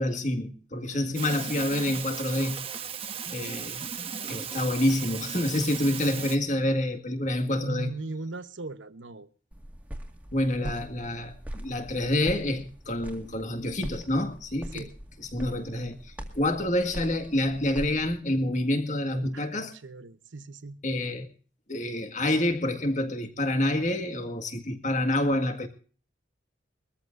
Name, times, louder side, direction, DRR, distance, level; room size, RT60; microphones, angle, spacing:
voice 1, 0.0-2.6 3.3-3.8 4.3-7.9 10.3-14.9 15.2-19.7 20.8-21.3 21.7-25.7, left 1 dB, 40° left, 1.9 m, -28 dB
sound 1, 1.1-6.4, right 7 dB, 30° right, 1.1 m, -36 dB
voice 2, 7.6-9.3 10.6-10.8 14.7-14.9 19.3-20.8, right 3 dB, 85° right, 1.0 m, -39 dB
sound 2, 9.5-18.1, equal, 10° right, 2.0 m, -42 dB
23.0 x 14.0 x 2.6 m
head